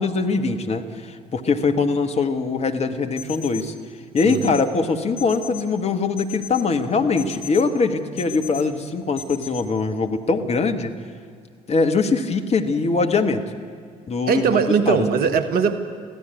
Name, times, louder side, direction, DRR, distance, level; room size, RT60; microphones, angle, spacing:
voice 1, 0.0-3.7 4.1-10.9 11.7-13.4 14.1-14.5 14.8-15.0, left 4 dB, 35° left, 6 dB, 1.6 m, -22 dB
sound 1, 3.2-3.6 4.2-4.6 5.2-5.6 6.2-6.6 7.2-7.6 8.2-8.6 9.2-9.6, left 9 dB, 55° left, 4.5 m, -36 dB
voice 2, 4.2-4.5 14.3-15.8, right 6 dB, 50° right, 11 dB, 1.5 m, -20 dB
23.5 x 16.5 x 8.3 m, 2.2 s
figure-of-eight pair, 50°, 19 cm